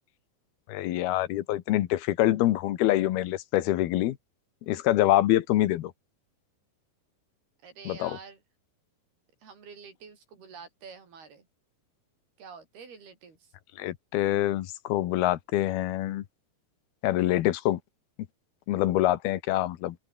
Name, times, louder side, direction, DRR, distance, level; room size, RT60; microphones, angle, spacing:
voice 1, 0.7-4.2 4.7-5.9 7.9-8.2 13.8-16.2 17.0-17.8 18.7-20.0, left 14 dB, 80° left, 3.2 m, -25 dB
voice 2, 7.6-8.4 9.4-11.5 12.4-13.5, right 5 dB, 75° right, 6.8 m, -47 dB
open air
omnidirectional pair, 4.5 m